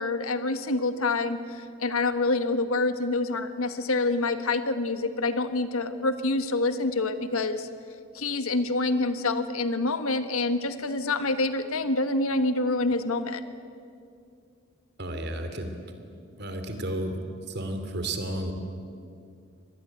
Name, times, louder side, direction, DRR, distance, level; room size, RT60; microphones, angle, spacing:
voice 1, 0.0-7.7 8.1-13.4, left 2 dB, 75° left, 10 dB, 1.4 m, -27 dB
voice 2, 15.0-15.7 16.3-17.2 17.5-18.5, right 1 dB, 50° right, 7 dB, 2.9 m, -32 dB
25.5 x 19.5 x 9.2 m, 2.4 s
head